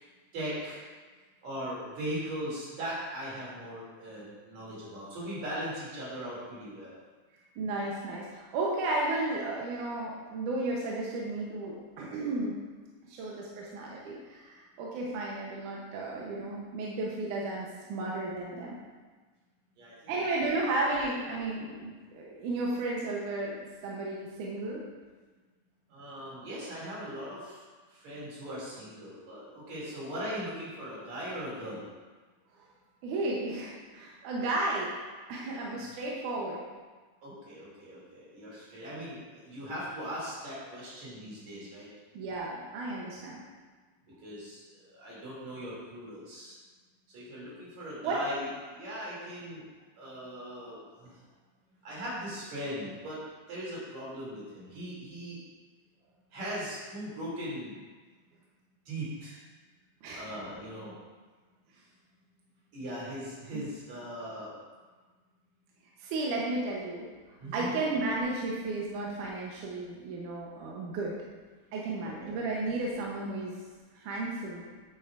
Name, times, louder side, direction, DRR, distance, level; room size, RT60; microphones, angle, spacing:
voice 1, 0.3-0.8 1.4-7.0 19.8-20.3 25.9-27.6 27.9-31.8 37.2-41.9 44.2-44.6 45.0-46.6 47.1-49.6 50.0-51.1 51.8-53.2 53.5-55.4 56.3-57.8 58.9-59.4 60.1-60.9 62.7-64.5 67.4-67.7 72.0-72.4, equal, 55° right, -7 dB, 3.9 m, -39 dB
voice 2, 7.6-12.6 13.1-18.8 20.1-24.8 33.0-34.9 35.3-36.6 42.1-43.4 48.0-48.2 60.0-60.4 63.5-63.6 66.0-67.1 67.5-71.2 71.7-73.6 73.9-74.7, right 2 dB, 75° right, -3 dB, 2.3 m, -33 dB
9.9 x 7.8 x 2.5 m, 1.4 s
omnidirectional pair, 3.8 m